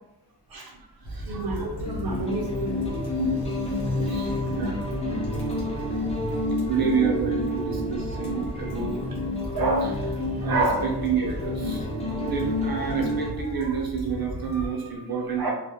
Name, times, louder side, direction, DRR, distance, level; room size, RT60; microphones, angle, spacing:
sound 1, 1.0-14.7, equal, 90° left, 1.1 m, -37 dB
voice 1, 1.1-3.4 4.1-4.8 6.6-9.0 9.5-11.8 12.2-15.5, right 4 dB, 65° right, 0 dB, 0.6 m, -28 dB
sound 2, 1.9-13.3, left 1 dB, 15° left, 0.5 m, -29 dB
voice 2, 3.1-4.4 5.9-6.7 7.5-7.7 8.7-9.1 10.3-10.5 11.9-12.2 12.6-13.0 13.4-13.5 14.0-14.2 14.5-14.8, left 1 dB, 55° left, -3 dB, 0.7 m, -51 dB
2.3 x 2.0 x 2.7 m, 0.85 s
wide cardioid pair, 130°, 39 cm